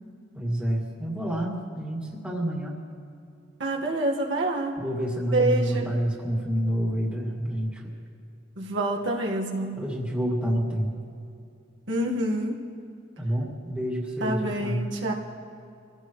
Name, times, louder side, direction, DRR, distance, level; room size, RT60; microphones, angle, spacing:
voice 1, 0.4-2.8 4.8-7.8 9.8-10.9 13.2-14.9, equal, 5° right, -3 dB, 2.3 m, -28 dB
voice 2, 3.6-4.7 5.3-5.8 8.6-9.8 11.9-12.5 14.2-15.1, right 2 dB, 70° right, -1 dB, 1.7 m, -27 dB
25.5 x 16.0 x 3.2 m, 2.5 s
head